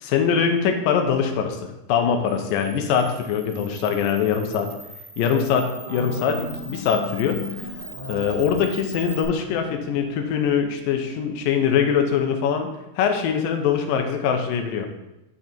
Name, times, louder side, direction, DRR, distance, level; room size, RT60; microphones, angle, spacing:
voice 1, 0.0-4.7 5.2-7.4 8.1-12.7 13.0-14.9, left 7 dB, 75° left, 5 dB, 2.3 m, -23 dB
Camera, 2.2-9.2, right 2 dB, 20° right, 2.4 m, -41 dB
sound 1, 5.8-12.1, left 3 dB, 50° right, 1.9 m, -38 dB
6.3 x 6.2 x 4.3 m, 0.93 s
omnidirectional pair, 4.5 m